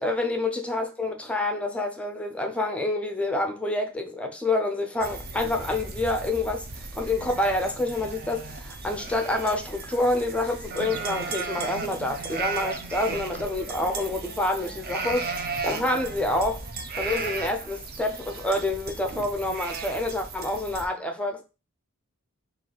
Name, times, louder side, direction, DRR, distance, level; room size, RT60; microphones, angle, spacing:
voice 1, 0.0-6.7 7.0-16.6 17.0-21.4, left 2 dB, 5° left, 0.5 m, -27 dB
sound 1, 5.0-20.9, right 4 dB, 45° right, 0.6 m, -35 dB
3.9 x 2.4 x 4.5 m
head